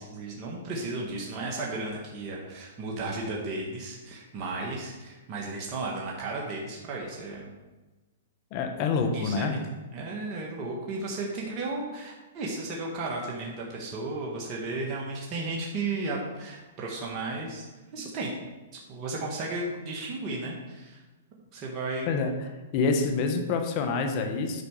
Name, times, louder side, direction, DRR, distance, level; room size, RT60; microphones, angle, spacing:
voice 1, 0.0-7.5 9.1-9.6 9.9-17.6 17.9-18.3 18.7-21.0 21.5-22.1, right 2 dB, 35° right, -2 dB, 1.7 m, -34 dB
voice 2, 8.5-9.6 22.1-22.3 22.7-24.6, left 4 dB, 40° left, 5 dB, 1.3 m, -27 dB
9.6 x 5.2 x 4.9 m, 1.2 s
hypercardioid pair, 130°, 0 cm